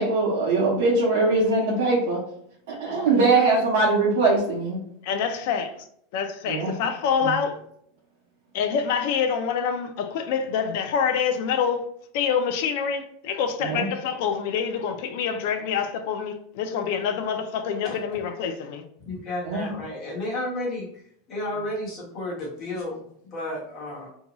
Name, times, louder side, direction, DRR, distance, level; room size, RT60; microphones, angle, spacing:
voice 1, 0.0-2.2 2.7-4.8 6.5-6.7 7.2-7.4 13.6-13.9 19.5-19.7, right 3 dB, 75° right, 0.7 m, -22 dB
voice 2, 2.9-3.4 5.0-5.7 6.1-7.6 8.5-11.8 12.1-18.8, left 7 dB, 50° left, 0.4 m, -26 dB
voice 3, 19.0-20.9 21.3-24.1, left 1 dB, 25° left, 1.1 m, -32 dB
2.7 x 2.2 x 2.9 m
supercardioid pair, 175°, 0 cm